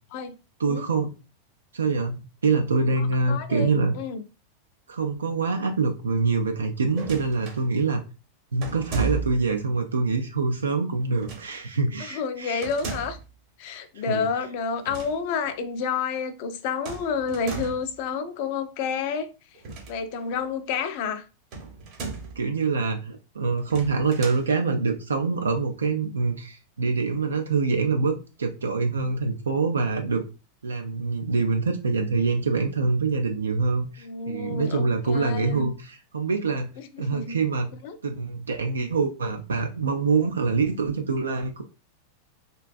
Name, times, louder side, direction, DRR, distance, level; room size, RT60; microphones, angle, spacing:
voice 1, 0.6-1.1 1.7-3.9 4.9-8.0 8.5-12.7 14.0-14.3 22.4-30.2 30.6-36.7 37.0-37.7 38.0-41.6, right 4 dB, 70° right, 0.3 m, -25 dB
voice 2, 3.0-3.7 3.9-4.2 12.0-13.2 13.6-19.3 19.9-21.2 34.0-35.7 36.8-37.4 37.8-38.0, left 5 dB, 45° left, 0.4 m, -30 dB
sound 1, 6.9-7.6 8.6-9.5 11.1-11.6 12.6-13.3 14.7-15.2 15.4-15.5 16.8-17.9 19.5-20.4 21.5-22.4 23.6-24.4, right 4 dB, 40° right, 0.8 m, -35 dB
2.5 x 2.2 x 2.4 m
figure-of-eight pair, 90°, 0 cm